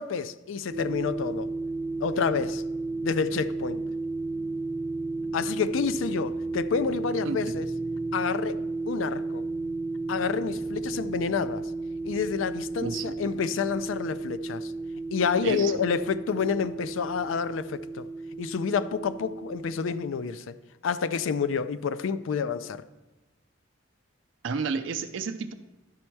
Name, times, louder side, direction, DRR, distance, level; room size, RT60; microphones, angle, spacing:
voice 1, 0.0-1.5 2.0-2.6 3.0-3.8 5.3-7.7 8.1-8.6 8.9-9.4 10.1-11.7 12.0-14.7 15.1-18.1 18.4-20.6 20.8-22.8, left 6 dB, 80° left, 0.4 m, -29 dB
sound 1, 0.7-20.0, right 3 dB, 20° right, 0.5 m, -33 dB
voice 2, 7.2-7.6 12.8-13.0 15.4-15.7 24.4-25.5, right 5 dB, 70° right, 0.5 m, -31 dB
11.0 x 4.3 x 4.6 m
head